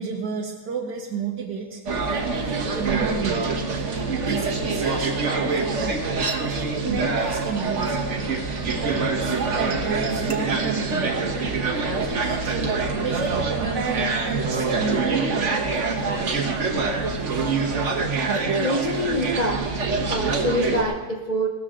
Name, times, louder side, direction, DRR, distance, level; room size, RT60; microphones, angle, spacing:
voice 1, 0.0-3.5 4.1-6.0 6.5-8.0 8.6-12.7 13.0-15.7, right 5 dB, 70° right, 0 dB, 1.6 m, -32 dB
sound 1, 1.9-20.8, right 4 dB, 45° right, 1.3 m, -25 dB
voice 2, 18.6-19.7 20.1-21.5, equal, 50° left, 1 dB, 0.5 m, -26 dB
17.0 x 13.0 x 3.7 m, 1.4 s
omnidirectional pair, 1.9 m